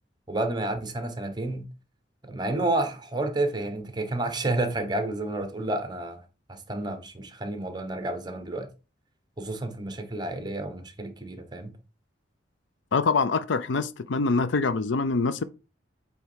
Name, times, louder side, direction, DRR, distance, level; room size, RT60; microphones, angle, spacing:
voice 1, 0.3-1.7 2.2-6.2 6.5-8.7 9.4-11.7, right 2 dB, 25° right, 1.1 m, -30 dB
voice 2, 12.9-15.4, left 4 dB, 75° left, 0.5 m, -24 dB
8.2 x 3.5 x 4.4 m
head